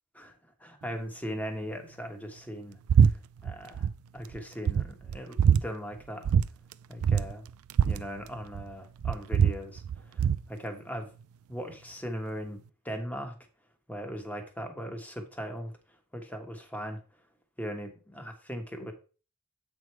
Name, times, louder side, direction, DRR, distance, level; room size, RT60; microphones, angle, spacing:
voice 1, 0.6-3.1 3.4-3.9 4.1-6.3 6.9-7.4 7.8-9.8 10.1-11.1 11.5-13.3 13.9-15.7 16.1-17.0 17.6-18.9, equal, 5° left, 4 dB, 1.2 m, -39 dB
sound 1, 2.9-3.1 3.4-3.9 4.3-4.4 4.7-5.6 6.2-6.5 6.7-6.8 7.0-8.7 9.0-10.4, right 7 dB, 70° right, 0.3 m, -23 dB
7.9 x 4.7 x 4.6 m, 0.36 s
head